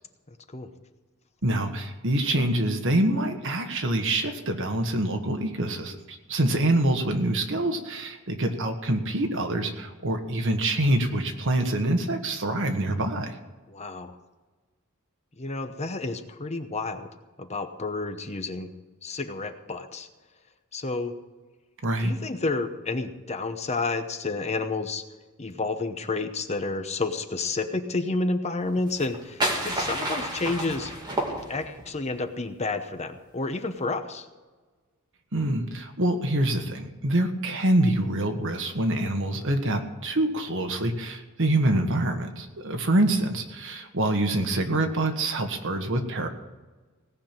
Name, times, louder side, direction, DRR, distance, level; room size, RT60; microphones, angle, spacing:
voice 1, 1.4-13.4 21.8-22.1 35.3-46.3, right 1 dB, 60° right, 5 dB, 1.5 m, -25 dB
voice 2, 13.7-14.2 15.4-17.1 17.4-18.7 19.0-20.1 20.7-21.1 22.0-25.0 25.4-30.9 31.5-34.3, left 3 dB, 30° left, 8 dB, 0.9 m, -30 dB
sound 1, 28.9-31.9, right 1 dB, 20° right, 2.6 m, -30 dB
17.5 x 5.9 x 8.9 m, 1.3 s
head